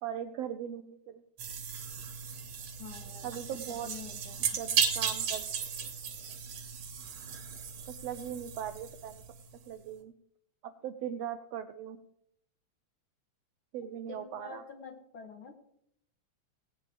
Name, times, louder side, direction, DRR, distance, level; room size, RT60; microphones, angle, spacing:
voice 1, 0.0-1.2 3.2-3.9 4.5-5.5 7.9-9.2 9.7-10.1 10.6-12.0 13.7-14.6, right 9 dB, 80° right, 9 dB, 1.5 m, -39 dB
sound 1, 1.4-9.5, right 7 dB, 65° right, 2.4 m, -35 dB
voice 2, 2.8-4.6 14.1-15.5, left 5 dB, 55° left, 4 dB, 1.7 m, -47 dB
18.0 x 9.1 x 3.4 m, 0.71 s
omnidirectional pair, 3.4 m